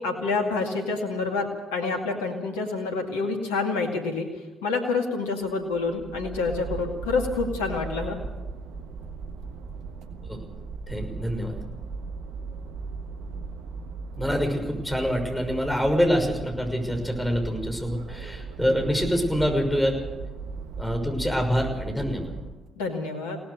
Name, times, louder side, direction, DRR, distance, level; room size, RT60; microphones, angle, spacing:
voice 1, 0.0-4.3 4.6-8.2 22.8-23.4, left 4 dB, 80° left, 3 dB, 2.2 m, -27 dB
sound 1, 5.4-22.7, right 4 dB, 70° right, 1.4 m, -37 dB
voice 2, 10.9-11.5 14.2-19.9 20.8-22.3, equal, 5° left, 3 dB, 6.0 m, -25 dB
22.5 x 18.0 x 6.7 m, 1.1 s
hypercardioid pair, 40°, 0 cm